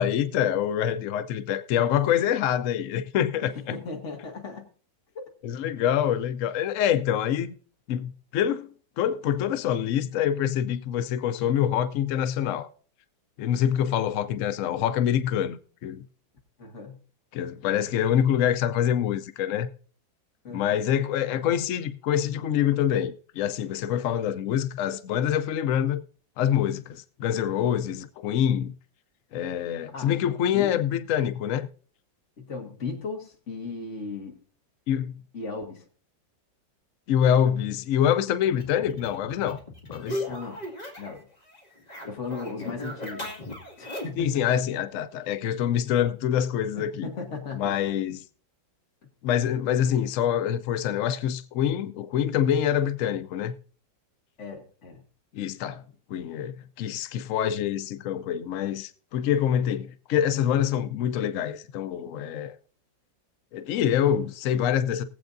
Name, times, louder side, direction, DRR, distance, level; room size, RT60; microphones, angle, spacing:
voice 1, 0.0-3.5 5.4-7.5 7.9-8.7 9.0-12.7 13.4-16.0 17.3-19.7 20.5-26.0 26.4-28.7 29.3-31.7 34.9-35.1 37.1-39.6 39.9-40.2 44.2-47.1 47.5-48.2 49.2-53.5 55.3-55.8 56.1-62.6 63.5-65.0, left 9 dB, 90° left, 0.6 m, -25 dB
voice 2, 3.4-4.7 5.2-5.3 16.6-17.0 20.4-20.7 29.9-30.1 30.5-30.7 32.4-34.4 35.3-35.9 40.3-40.6 41.0-41.3 42.1-43.3 43.8-44.5 46.8-47.8 54.4-55.0, left 4 dB, 40° left, 1.9 m, -36 dB
sound 1, 38.5-41.2 41.5-44.3, left 1 dB, 20° left, 2.1 m, -37 dB
20.5 x 7.9 x 2.6 m
omnidirectional pair, 2.0 m